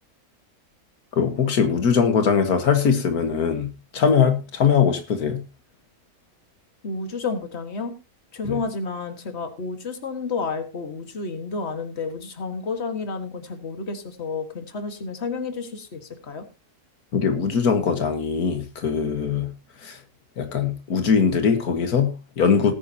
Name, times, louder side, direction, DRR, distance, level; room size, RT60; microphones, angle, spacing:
voice 1, 1.1-5.4 8.4-8.6 17.1-19.5 19.8-20.0 20.4-22.7, left 6 dB, 85° left, 1.9 m, -21 dB
voice 2, 6.8-7.9 8.3-16.4, left 4 dB, 45° left, 1.9 m, -31 dB
19.0 x 9.5 x 2.8 m
omnidirectional pair, 1.6 m